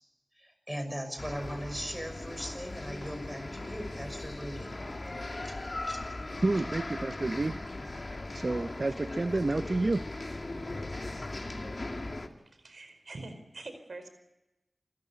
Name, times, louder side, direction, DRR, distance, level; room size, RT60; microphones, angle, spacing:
voice 1, 0.4-4.8 5.4-6.0, equal, 5° right, 6 dB, 6.2 m, -39 dB
sound 1, 1.2-12.3, left 2 dB, 45° left, 2.5 m, -39 dB
voice 2, 6.4-10.1, right 2 dB, 50° right, 12 dB, 0.7 m, -30 dB
voice 3, 12.4-14.1, right 2 dB, 75° right, 8 dB, 4.9 m, -45 dB
28.0 x 14.5 x 8.4 m, 0.97 s
wide cardioid pair, 55°, 0 cm